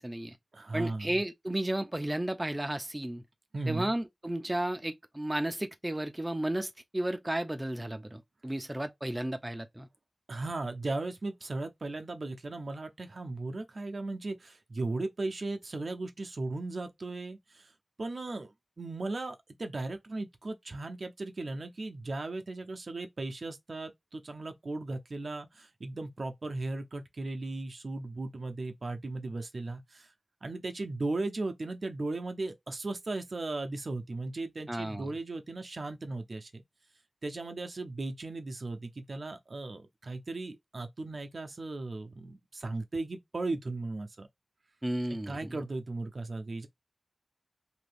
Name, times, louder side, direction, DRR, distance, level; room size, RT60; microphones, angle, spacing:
voice 1, 0.0-0.4 0.7-3.2 3.7-9.9 34.7-35.1 44.8-45.4, right 1 dB, 20° right, 0.4 m, -33 dB
voice 2, 0.5-1.1 3.5-3.9 10.3-17.7 18.0-18.5 18.8-30.1 30.4-36.6 37.2-44.3 45.1-46.7, right 2 dB, 75° right, 0.5 m, -37 dB
2.8 x 2.5 x 3.3 m
wide cardioid pair, 70°, 0 cm